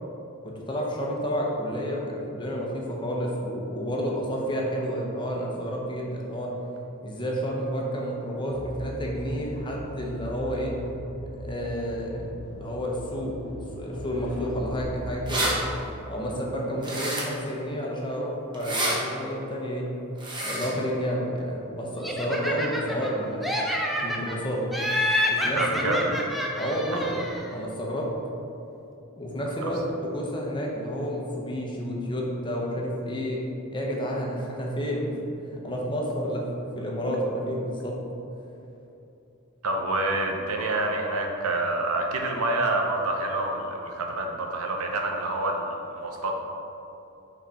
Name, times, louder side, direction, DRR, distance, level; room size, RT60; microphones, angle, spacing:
voice 1, 0.4-6.5 7.0-10.7 11.3-13.4 13.7-15.5 16.1-19.9 20.4-23.5 24.0-24.6 25.3-26.0 26.6-27.2 27.5-28.1 29.2-33.4 33.7-38.0, equal, 20° left, -2 dB, 0.9 m, -30 dB
sound 1, 8.5-15.8, equal, 90° left, 0.8 m, -38 dB
sound 2, 14.8-14.9 15.1-15.5 16.8-17.5 18.5-19.0 20.2-20.7, right 1 dB, 20° right, 1.0 m, -28 dB
Laughter, 22.0-23.1 23.4-24.4 24.7-27.5, left 1 dB, ahead, 0.5 m, -28 dB
voice 2, 25.4-26.0 26.9-27.0 29.6-29.7 39.6-46.3, right 2 dB, 75° right, 2 dB, 0.7 m, -27 dB
5.8 x 4.1 x 4.2 m, 2.9 s
head